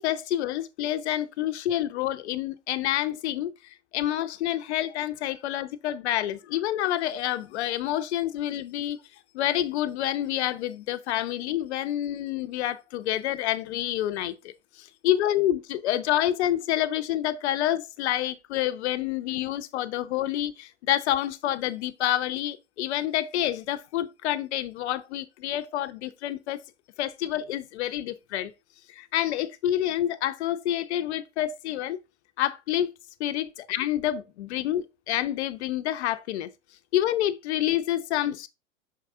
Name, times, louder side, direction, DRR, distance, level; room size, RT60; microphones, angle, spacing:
voice 1, 0.0-9.0 9.3-26.6 27.0-28.5 28.9-32.0 32.4-32.9 33.2-36.5 36.9-38.5, left 12 dB, 65° left, 0.8 m, -28 dB
6.5 x 4.9 x 3.6 m
hypercardioid pair, 105°, 36 cm